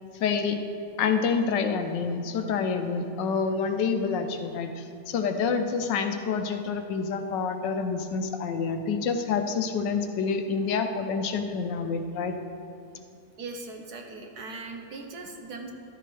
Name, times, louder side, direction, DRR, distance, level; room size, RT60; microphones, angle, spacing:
voice 1, 0.2-0.6 1.0-12.4, left 5 dB, 85° left, 6 dB, 1.4 m, -27 dB
voice 2, 13.4-15.7, right 3 dB, 65° right, 2 dB, 1.6 m, -39 dB
13.5 x 11.5 x 3.4 m, 2.5 s
omnidirectional pair, 1.9 m